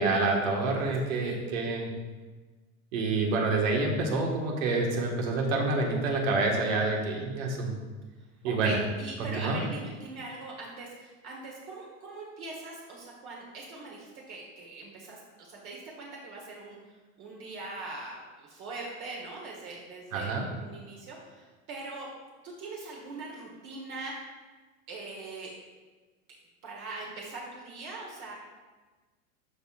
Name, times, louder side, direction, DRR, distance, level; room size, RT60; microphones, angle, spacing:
voice 1, 0.0-1.9 2.9-7.8 8.4-8.7 9.2-9.6 20.1-20.5, right 3 dB, 80° right, 0 dB, 1.7 m, -27 dB
voice 2, 8.4-22.1 22.4-24.1 24.9-25.5 26.6-28.3, right 3 dB, 45° right, -2 dB, 1.4 m, -41 dB
13.0 x 4.4 x 2.5 m, 1.3 s
supercardioid pair, 145°, 39 cm